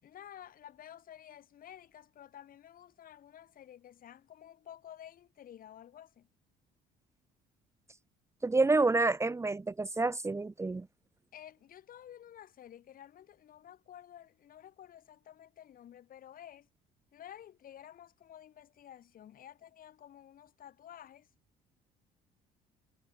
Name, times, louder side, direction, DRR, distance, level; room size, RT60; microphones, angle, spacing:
voice 1, 0.0-6.3 11.3-16.7 17.1-21.3, left 10 dB, 55° left, 6.8 m, -52 dB
voice 2, 8.4-10.9, right 3 dB, 15° right, 1.1 m, -28 dB
cardioid pair, 110°, 17 cm